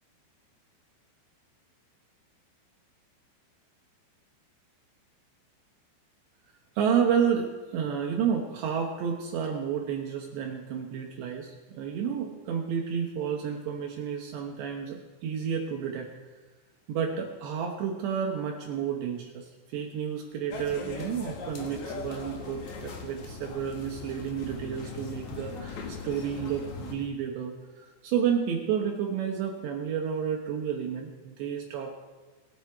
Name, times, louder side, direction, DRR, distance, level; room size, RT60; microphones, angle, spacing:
voice 1, 6.8-16.1 16.9-32.0, right 7 dB, 70° right, 1 dB, 3.0 m, -31 dB
sound 1, 20.5-26.9, left 4 dB, 60° left, 2.0 m, -39 dB
23.0 x 8.2 x 4.7 m, 1.3 s
omnidirectional pair, 5.7 m